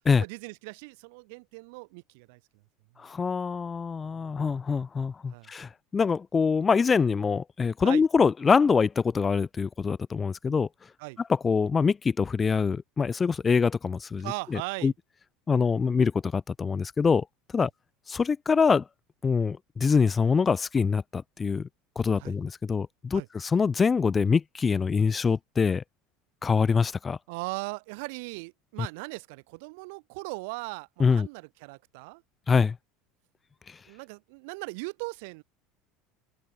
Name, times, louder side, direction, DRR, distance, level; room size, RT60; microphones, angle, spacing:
voice 1, 0.2-2.4 4.0-4.5 5.3-5.5 7.8-8.0 11.0-11.2 14.2-14.9 17.6-17.7 22.2-22.4 23.1-23.3 27.3-32.2 33.9-35.4, right 29 dB, 75° right, 5.8 m, -39 dB
voice 2, 3.0-10.7 11.3-14.3 14.5-14.9 15.5-17.3 17.5-17.7 18.1-18.8 19.2-21.7 22.0-25.8 26.4-27.2 31.0-31.3 32.5-32.8 33.7-33.8, left 5 dB, 25° left, 0.4 m, -24 dB
supercardioid pair, 105°, 0 cm